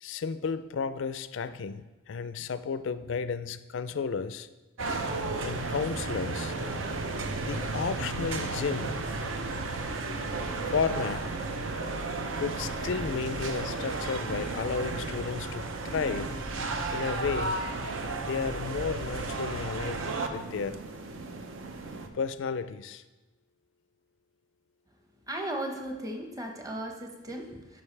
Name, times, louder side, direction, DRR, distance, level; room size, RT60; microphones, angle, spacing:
voice 1, 0.0-4.5 5.4-6.5 7.4-9.0 10.7-11.3 12.4-16.3 16.9-17.7 18.2-20.8 22.1-23.0, left 5 dB, 70° left, 13 dB, 0.4 m, -33 dB
sound 1, 4.8-22.1, right 3 dB, 80° right, 0.7 m, -33 dB
voice 2, 25.3-27.8, right 1 dB, 20° right, 3 dB, 0.8 m, -36 dB
11.5 x 5.2 x 3.3 m, 1.1 s
head